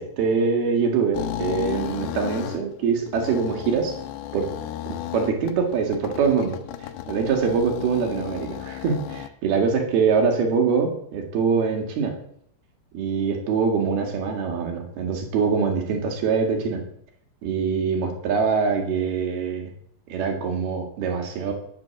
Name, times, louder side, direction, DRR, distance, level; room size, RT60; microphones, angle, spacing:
voice 1, 0.0-4.0 4.3-4.5 5.1-6.6 7.1-12.1 12.9-16.8 17.4-19.7 20.1-21.5, right 5 dB, 65° right, 3 dB, 3.8 m, -24 dB
sound 1, 1.1-9.3, left 13 dB, 80° left, 2.8 m, -34 dB
11.0 x 9.0 x 7.1 m, 0.69 s
omnidirectional pair, 5.0 m